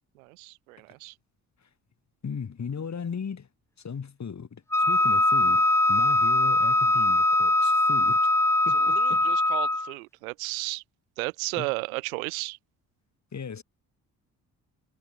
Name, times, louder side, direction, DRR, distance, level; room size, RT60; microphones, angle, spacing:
voice 1, 0.2-1.1 8.8-10.8 11.2-12.6, right 24 dB, 80° right, 1.0 m, -34 dB
voice 2, 2.2-3.5 3.8-8.3 8.6-9.3 11.5-11.7 13.3-13.6, left 6 dB, 40° left, 4.6 m, -37 dB
Wind instrument woodwind instrument, 4.7-9.9, left 2 dB, 5° left, 0.7 m, -22 dB
hypercardioid pair, 45°, 42 cm